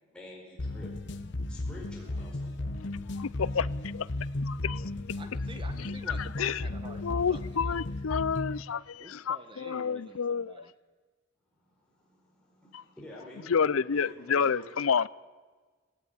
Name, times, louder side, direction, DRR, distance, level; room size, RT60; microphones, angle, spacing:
voice 1, 0.0-1.0 1.5-2.7 11.6-14.9, left 1 dB, 5° left, 5.0 m, -49 dB
sound 1, 0.6-8.6, left 2 dB, 60° left, 1.0 m, -35 dB
voice 2, 3.1-3.7 3.9-4.1 4.4-4.8 5.8-6.7 7.0-10.6 12.7-12.8 13.5-15.1, left 6 dB, 85° left, 0.6 m, -29 dB
voice 3, 5.2-7.9 9.0-10.7, right 2 dB, 25° right, 1.4 m, -49 dB
17.5 x 17.0 x 9.7 m
head